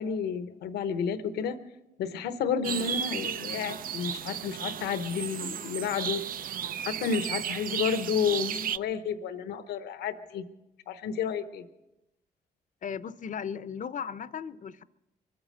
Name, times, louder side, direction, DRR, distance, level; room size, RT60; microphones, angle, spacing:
voice 1, 0.0-1.6 2.0-6.2 6.8-10.4 10.9-11.6, left 7 dB, 90° left, 11 dB, 0.9 m, -31 dB
sound 1, 2.6-8.8, right 9 dB, 60° right, 0.5 m, -34 dB
voice 2, 12.8-14.8, left 7 dB, 50° left, 16 dB, 0.6 m, -36 dB
23.5 x 8.7 x 6.5 m, 0.96 s
cardioid pair, 75°, 17 cm